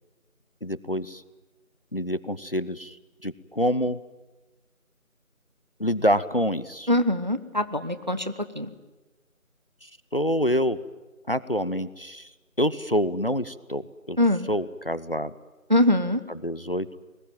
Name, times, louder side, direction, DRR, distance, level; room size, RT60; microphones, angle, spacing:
voice 1, 0.6-1.2 1.9-3.0 3.2-4.0 5.8-6.9 9.8-10.8 11.3-12.3 12.6-14.2 14.4-15.3 16.3-17.0, equal, 40° left, 17 dB, 0.8 m, -27 dB
voice 2, 6.9-8.2 8.6-8.7 14.2-14.5 15.7-16.2, left 1 dB, 30° right, 11 dB, 1.0 m, -22 dB
25.5 x 20.5 x 9.1 m, 1.2 s
figure-of-eight pair, 175°, 42 cm